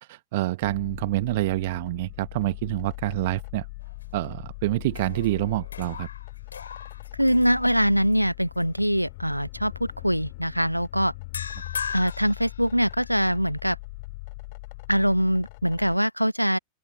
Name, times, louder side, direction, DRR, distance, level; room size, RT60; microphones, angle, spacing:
voice 1, 0.0-3.7 4.1-6.1, right 18 dB, 50° right, 1.5 m, -27 dB
sound 1, 0.6-16.0, left 25 dB, 50° left, 2.6 m, -41 dB
sound 2, 3.8-4.5 4.9-8.1 8.6-8.8 11.3-13.3, left 6 dB, 70° left, 4.3 m, -39 dB
voice 2, 7.2-11.1 11.9-13.8 14.9-16.6, equal, 90° right, 1.1 m, -23 dB
open air
figure-of-eight pair, 90°, 0 cm